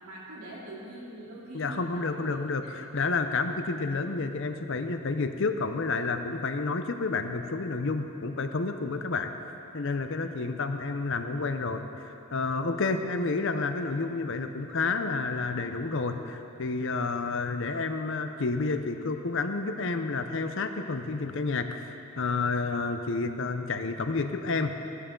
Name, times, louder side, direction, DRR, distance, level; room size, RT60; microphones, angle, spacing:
voice 1, 0.0-2.4 2.6-2.7, right 1 dB, 85° right, -6 dB, 3.4 m, -43 dB
voice 2, 1.5-9.3 9.7-21.8 22.2-24.7, left 3 dB, 60° left, 7 dB, 0.7 m, -30 dB
15.5 x 12.5 x 3.9 m, 2.8 s
head